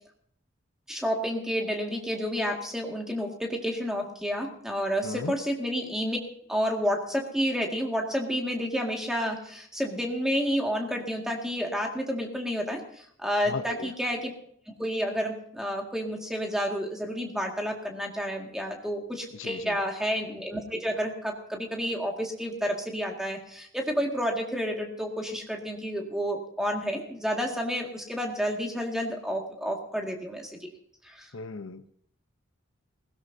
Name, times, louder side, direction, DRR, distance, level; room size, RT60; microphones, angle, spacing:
voice 1, 0.9-6.2 6.5-14.3 14.7-30.7 31.0-31.3, equal, 5° right, 1 dB, 2.0 m, -30 dB
voice 2, 13.5-13.9 19.4-19.8 31.3-31.9, left 3 dB, 85° left, 11 dB, 0.8 m, -36 dB
20.5 x 16.5 x 2.8 m, 0.65 s
head